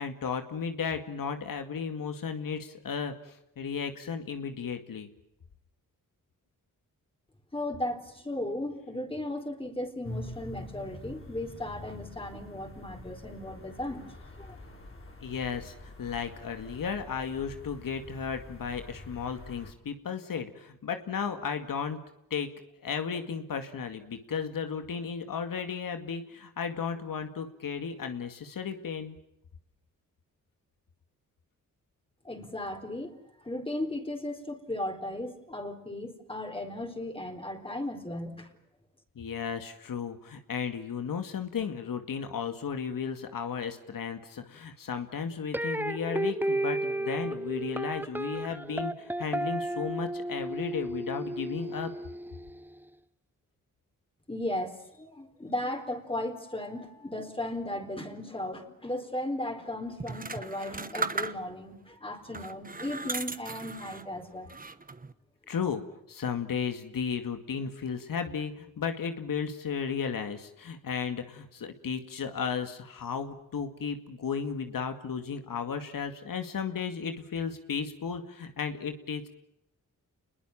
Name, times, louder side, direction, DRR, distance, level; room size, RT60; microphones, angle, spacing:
voice 1, 0.0-5.1 15.2-22.0 22.3-22.5 22.8-29.2 39.2-51.9 65.5-65.8 66.1-79.3, left 6 dB, 85° left, 7 dB, 2.2 m, -34 dB
voice 2, 7.5-14.6 32.2-38.5 54.3-64.5, left 1 dB, 15° left, 4 dB, 4.2 m, -36 dB
sound 1, 10.0-19.7, left 1 dB, 40° left, 4.6 m, -45 dB
sound 2, 45.5-52.6, right 1 dB, 5° right, 1.0 m, -33 dB
sound 3, 60.0-61.7 62.3-64.1 64.5-65.1, right 4 dB, 25° right, 1.2 m, -36 dB
29.0 x 21.5 x 7.4 m, 0.81 s
wide cardioid pair, 95°, 33 cm